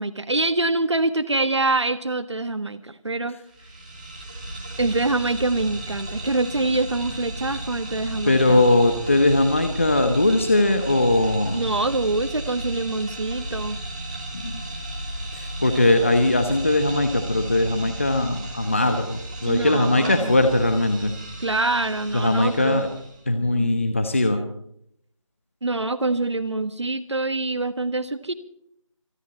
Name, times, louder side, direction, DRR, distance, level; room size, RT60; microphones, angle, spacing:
voice 1, 0.0-3.4 4.8-8.6 11.5-13.8 19.5-20.4 21.4-22.9 23.5-23.8 25.6-28.3, right 2 dB, 55° right, 11 dB, 1.5 m, -25 dB
sound 1, 3.5-23.2, right 1 dB, 15° right, 2.9 m, -34 dB
voice 2, 8.3-11.6 14.4-14.5 15.6-21.1 22.1-22.9 23.3-24.4, left 2 dB, 25° left, 7 dB, 1.0 m, -20 dB
26.0 x 11.5 x 4.2 m, 0.70 s
figure-of-eight pair, 175°, 17 cm